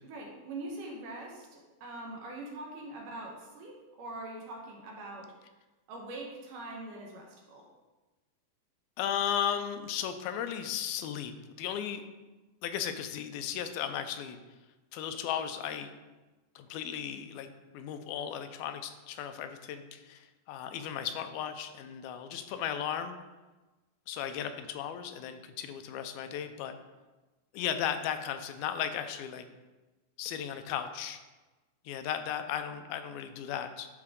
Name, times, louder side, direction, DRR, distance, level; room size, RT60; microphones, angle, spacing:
voice 1, 0.0-5.3 5.9-7.7, right 2 dB, 70° right, -1 dB, 2.6 m, -43 dB
voice 2, 9.0-11.3 11.6-12.0 12.6-14.4 14.9-15.9 16.6-17.5 17.7-23.2 24.1-26.8 27.5-29.4 30.2-31.2 31.9-33.9, left 9 dB, 85° left, 8 dB, 2.5 m, -35 dB
11.5 x 4.7 x 3.6 m, 1.2 s
omnidirectional pair, 4.3 m